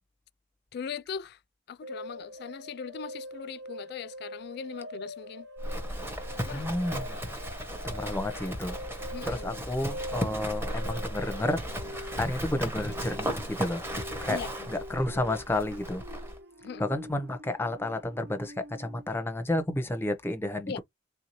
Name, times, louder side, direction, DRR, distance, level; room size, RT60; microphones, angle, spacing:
voice 1, 0.7-1.4 1.7-5.5 6.4-6.7 9.1-9.6 14.2-14.7 16.6-16.9 20.7-20.8, left 6 dB, 60° left, 0.3 m, -39 dB
sound 1, 1.8-19.2, equal, 60° right, 0.5 m, -44 dB
Livestock farm animals working animals, 5.6-16.4, equal, 15° right, 0.9 m, -36 dB
voice 2, 6.5-7.2 7.8-8.8 9.3-11.6 11.9-13.8 14.2-14.4 14.7-16.0 16.8-20.8, left 1 dB, 10° left, 0.6 m, -31 dB
3.5 x 2.6 x 3.0 m
head